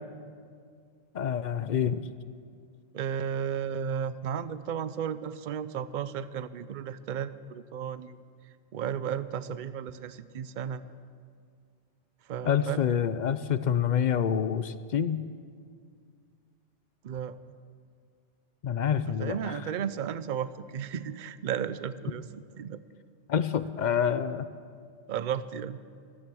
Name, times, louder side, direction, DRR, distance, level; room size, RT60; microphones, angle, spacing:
voice 1, 1.1-2.0 12.4-15.2 18.6-19.6 23.3-24.5, left 8 dB, 55° left, 13 dB, 0.5 m, -27 dB
voice 2, 2.9-8.2 8.7-10.8 12.3-12.8 17.0-17.4 19.1-22.8 25.1-25.8, right 8 dB, 55° right, 15 dB, 0.6 m, -34 dB
14.0 x 14.0 x 6.2 m, 2.2 s
omnidirectional pair, 1.2 m